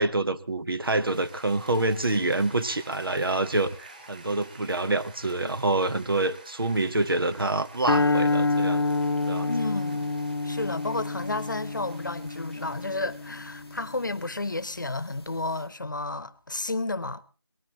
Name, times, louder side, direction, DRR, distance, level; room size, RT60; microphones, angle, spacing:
voice 1, 0.0-8.9 9.3-9.5, right 2 dB, 65° right, 1.1 m, -26 dB
sound 1, 0.8-14.0, right 2 dB, 20° right, 4.0 m, -50 dB
sound 2, 7.9-14.2, left 3 dB, 85° left, 0.7 m, -28 dB
voice 2, 9.4-10.1 10.4-17.2, left 2 dB, 55° left, 0.9 m, -32 dB
23.0 x 19.5 x 3.0 m
figure-of-eight pair, 180°, 13 cm